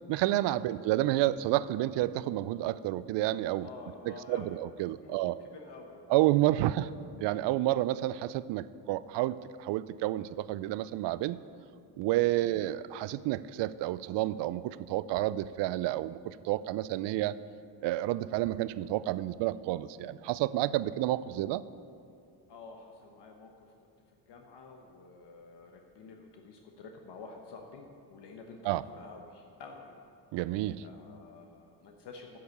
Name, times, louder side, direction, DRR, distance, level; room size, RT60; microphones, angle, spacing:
voice 1, 0.1-3.7 4.3-5.4 6.1-6.9 7.2-11.4 12.0-17.3 17.8-21.6 28.7-28.8 30.3-30.8, right 15 dB, 60° right, 17 dB, 0.5 m, -30 dB
voice 2, 3.6-4.6 5.0-6.1 12.4-12.5 20.9-21.1 22.5-23.7 24.3-30.0 30.8-32.4, left 4 dB, 60° left, 2 dB, 1.1 m, -49 dB
8.0 x 6.8 x 8.3 m, 2.4 s
supercardioid pair, 75°, 48 cm